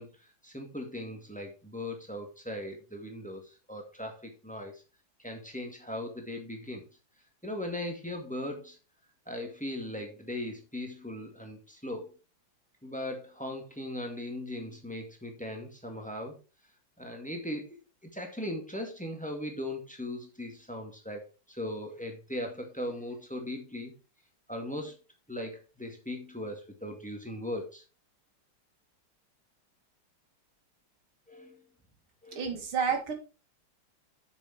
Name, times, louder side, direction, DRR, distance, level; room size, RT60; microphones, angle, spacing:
voice 1, 0.0-4.8 5.2-6.9 7.4-8.8 9.3-12.1 12.8-16.4 17.0-17.8 18.1-23.9 24.5-25.0 25.3-27.8 31.3-31.6 32.2-32.6, left 1 dB, 5° left, 2 dB, 1.7 m, -39 dB
voice 2, 32.3-33.1, right 6 dB, 75° right, 5 dB, 2.6 m, -30 dB
7.5 x 6.7 x 4.4 m, 0.32 s
omnidirectional pair, 2.3 m